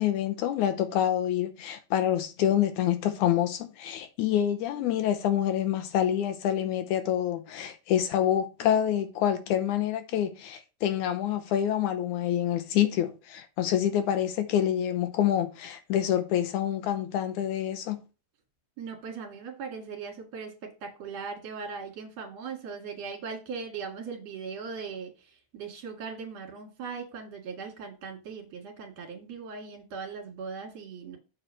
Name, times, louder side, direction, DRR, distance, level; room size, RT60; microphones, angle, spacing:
voice 1, 0.0-18.0, left 10 dB, 75° left, 2.1 m, -27 dB
voice 2, 18.8-31.2, right 5 dB, 55° right, 2.9 m, -39 dB
7.4 x 4.6 x 5.4 m
omnidirectional pair, 3.8 m